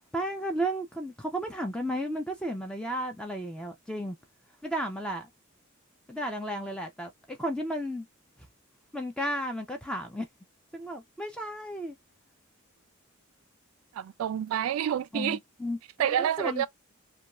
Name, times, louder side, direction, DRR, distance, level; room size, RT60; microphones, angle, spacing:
voice 1, 0.1-4.2 4.6-5.3 6.1-8.1 8.9-10.3 10.7-12.0 15.1-16.7, equal, 5° left, 0.4 m, -33 dB
voice 2, 14.0-15.4 16.0-16.7, right 10 dB, 85° right, 0.3 m, -28 dB
2.5 x 2.3 x 2.9 m
head